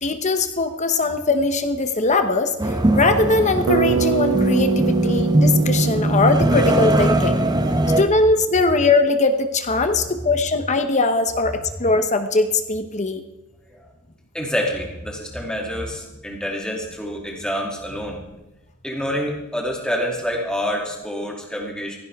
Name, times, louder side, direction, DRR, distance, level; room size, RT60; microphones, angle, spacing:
voice 1, 0.0-7.4 8.0-13.2, left 3 dB, 30° left, 8 dB, 0.9 m, -20 dB
sound 1, 2.6-8.0, right 1 dB, 20° right, 0.8 m, -20 dB
Bass guitar, 3.7-7.8, right 7 dB, 60° right, 0.4 m, -25 dB
voice 2, 14.3-18.2 18.8-22.0, equal, 5° left, -1 dB, 2.7 m, -27 dB
16.0 x 16.0 x 3.6 m, 1.0 s
head